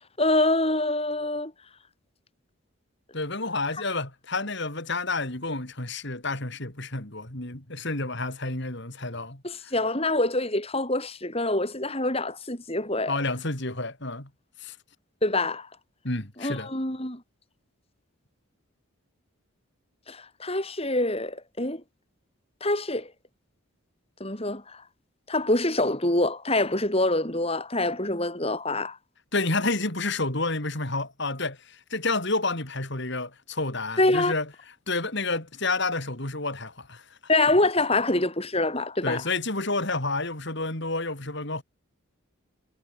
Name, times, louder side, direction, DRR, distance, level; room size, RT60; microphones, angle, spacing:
voice 1, 0.2-1.5 9.4-13.1 15.2-15.7 16.4-17.2 20.1-21.8 22.6-23.1 24.2-24.8 25.3-29.0 34.0-34.3 37.3-39.2, left 2 dB, 25° left, 5.0 m, -25 dB
voice 2, 3.1-9.7 13.1-14.3 14.6-14.8 16.0-16.7 29.3-34.5 34.9-37.0 39.0-41.6, left 3 dB, 55° left, 3.9 m, -30 dB
head